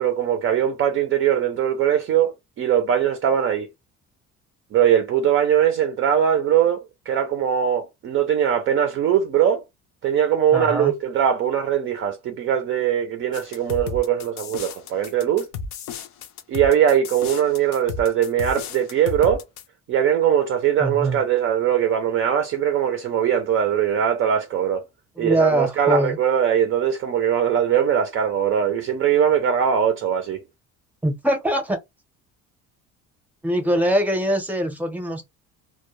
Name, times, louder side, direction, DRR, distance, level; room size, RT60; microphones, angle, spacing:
voice 1, 0.0-2.3 2.6-3.7 4.7-9.6 10.0-15.5 16.5-19.4 19.9-24.8 25.2-30.4, right 9 dB, 40° right, 0.4 m, -21 dB
voice 2, 10.5-10.9 20.8-21.2 25.2-26.2 31.0-31.8 33.4-35.2, right 1 dB, 5° right, 0.6 m, -22 dB
sound 1, 13.3-19.6, left 5 dB, 60° left, 0.5 m, -33 dB
2.1 x 2.1 x 2.9 m
cardioid pair, 150°, 32 cm